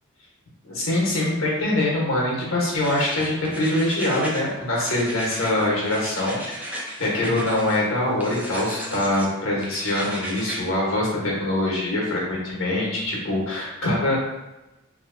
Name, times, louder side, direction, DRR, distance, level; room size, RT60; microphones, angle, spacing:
voice 1, 0.6-14.2, left 1 dB, 90° left, -4 dB, 1.1 m, -24 dB
sound 1, 2.7-4.5 4.8-7.8 8.2-9.3 9.6-10.6, equal, 10° right, 0.4 m, -35 dB
2.9 x 2.8 x 2.6 m, 1.0 s
head